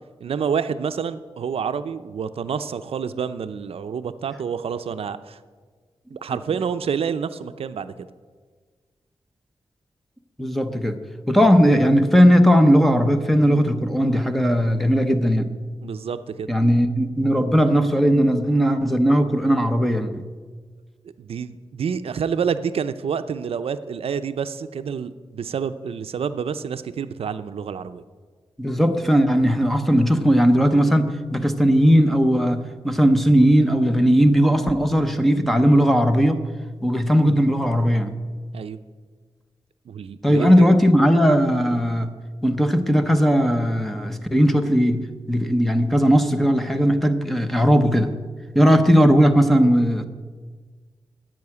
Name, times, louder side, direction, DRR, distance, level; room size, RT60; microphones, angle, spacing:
voice 1, 0.2-5.4 6.1-8.1 15.8-16.5 21.2-28.0 38.5-38.8 39.9-40.7, right 7 dB, 75° right, 11 dB, 0.5 m, -28 dB
voice 2, 10.4-11.0 11.3-15.5 16.5-20.2 28.6-36.4 36.8-38.1 40.2-42.1 42.4-48.1 48.5-50.1, equal, ahead, 7 dB, 0.8 m, -18 dB
10.5 x 7.6 x 9.6 m, 1.5 s
wide cardioid pair, 165°, 10 cm